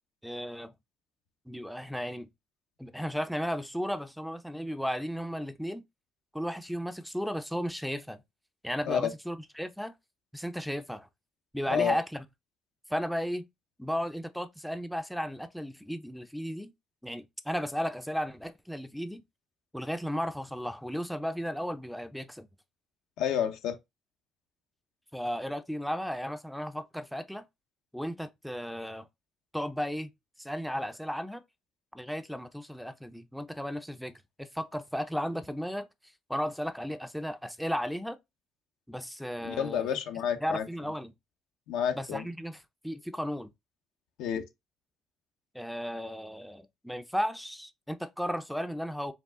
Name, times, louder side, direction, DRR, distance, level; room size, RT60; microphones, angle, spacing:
voice 1, 0.2-0.7 1.5-2.3 2.8-5.8 6.3-8.2 8.6-9.9 10.3-11.1 11.5-12.2 12.9-13.5 13.8-16.7 17.0-19.2 19.7-22.5 25.1-27.4 27.9-29.0 29.5-30.1 30.4-31.4 31.9-34.1 34.4-35.9 36.3-38.2 38.9-40.0 40.4-41.1 41.9-43.5 45.5-49.1, equal, ahead, 0.4 m, -34 dB
voice 2, 23.2-23.8 39.4-40.6 41.7-42.2 44.2-44.5, left 8 dB, 80° left, 0.7 m, -29 dB
4.6 x 2.4 x 3.6 m
cardioid pair, 105°, 0 cm